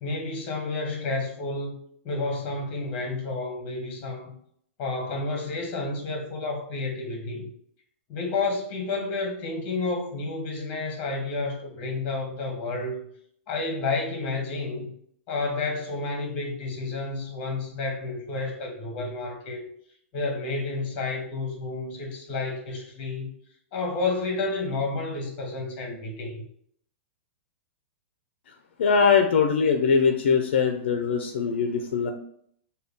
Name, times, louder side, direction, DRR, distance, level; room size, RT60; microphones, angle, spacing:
voice 1, 0.0-1.7 2.0-4.3 4.8-7.5 8.1-13.0 13.5-14.9 15.3-19.6 20.1-23.3 23.7-26.4, left 3 dB, 20° left, 2 dB, 0.9 m, -30 dB
voice 2, 28.8-32.1, left 6 dB, 55° left, 5 dB, 0.4 m, -22 dB
5.3 x 2.3 x 3.4 m, 0.65 s
supercardioid pair, 180°, 7 cm